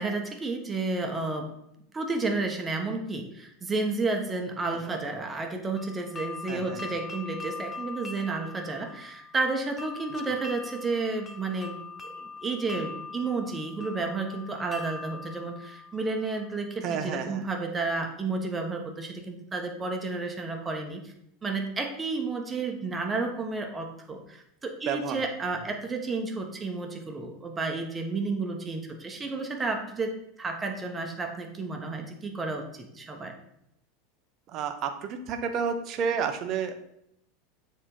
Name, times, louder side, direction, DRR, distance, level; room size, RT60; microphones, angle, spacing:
voice 1, 0.0-1.5 1.9-11.8 12.2-21.1 21.4-33.3, right 3 dB, 20° right, 3 dB, 1.3 m, -31 dB
sound 1, 5.8-16.6, left 4 dB, 20° left, 1.0 m, -42 dB
voice 2, 6.5-6.8 16.8-17.4 24.9-25.2 34.5-36.8, right 6 dB, 40° right, 7 dB, 0.8 m, -30 dB
7.2 x 4.3 x 5.3 m, 0.77 s
figure-of-eight pair, 80°, 0 cm